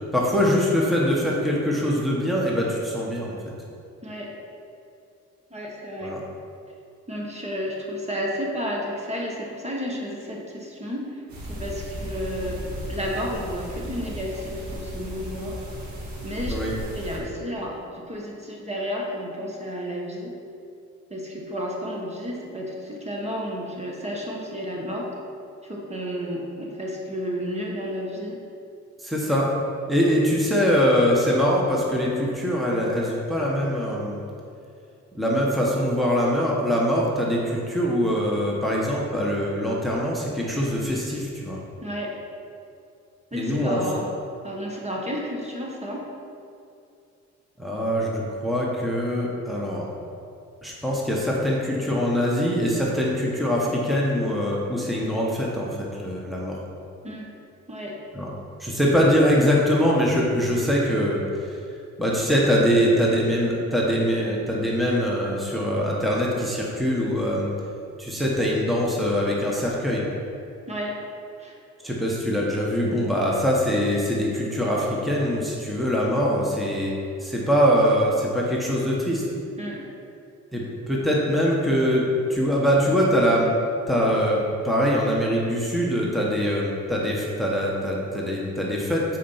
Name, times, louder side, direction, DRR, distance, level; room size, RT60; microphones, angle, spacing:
voice 1, 0.1-3.3 6.0-6.2 16.5-16.7 29.0-29.5 29.9-34.2 35.1-41.6 43.3-43.8 47.6-49.9 50.6-56.6 58.1-58.3 58.6-61.5 62.0-67.5 68.0-70.1 71.8-76.9 77.2-79.2 80.5-82.0 82.3-83.5 83.9-89.0, equal, ahead, -4 dB, 1.3 m, -23 dB
voice 2, 4.0-4.3 5.5-6.1 7.1-12.6 12.9-15.6 16.2-16.5 16.9-20.4 21.1-25.1 25.6-28.4 41.8-42.2 43.3-44.1 44.4-46.1 57.0-57.3 57.7-58.0 70.7-71.0 71.4-71.6 79.6-79.9, equal, 20° right, -2 dB, 1.4 m, -32 dB
sound 1, 11.3-17.2, equal, 70° right, 1.9 m, -35 dB
8.3 x 4.5 x 5.7 m, 2.6 s
cardioid pair, 90°, 30 cm